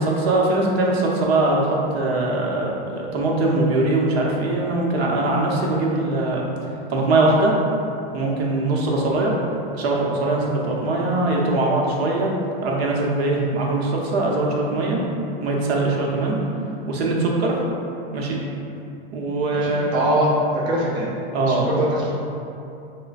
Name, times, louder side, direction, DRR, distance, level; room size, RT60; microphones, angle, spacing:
voice 1, 0.0-6.5 6.9-7.6 8.1-9.3 9.7-12.3 12.6-15.0 15.4-16.4 16.9-17.6 18.1-18.4 19.1-20.0 21.3-21.7, right 2 dB, 85° right, -2 dB, 0.8 m, -21 dB
voice 2, 19.5-21.1 21.5-22.1, right 1 dB, 15° right, -5 dB, 0.4 m, -23 dB
6.2 x 2.2 x 2.5 m, 2.7 s
supercardioid pair, 150°, 31 cm